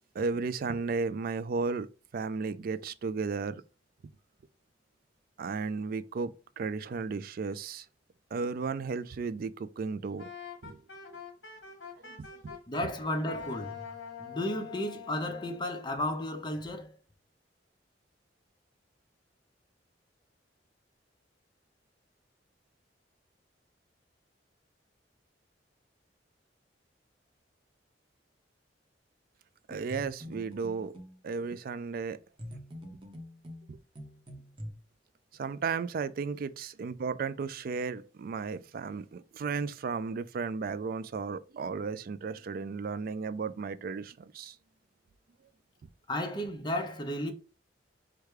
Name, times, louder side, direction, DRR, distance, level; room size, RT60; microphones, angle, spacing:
voice 1, 0.1-1.9 2.1-3.6 5.4-7.9 8.3-10.3 10.6-10.8 11.1-11.2 12.0-12.6 29.7-30.9 31.2-32.2 33.7-33.8 35.4-44.6, right 4 dB, 50° right, 0.3 m, -34 dB
Wind instrument woodwind instrument, 10.2-12.9 13.3-15.7, left 7 dB, 70° left, 1.2 m, -45 dB
voice 2, 12.7-13.8 14.2-16.9 46.1-47.3, left 1 dB, 25° left, 0.7 m, -33 dB
sound 1, 29.7-31.2 32.4-34.7, equal, 30° right, 0.8 m, -44 dB
4.7 x 2.2 x 4.8 m
head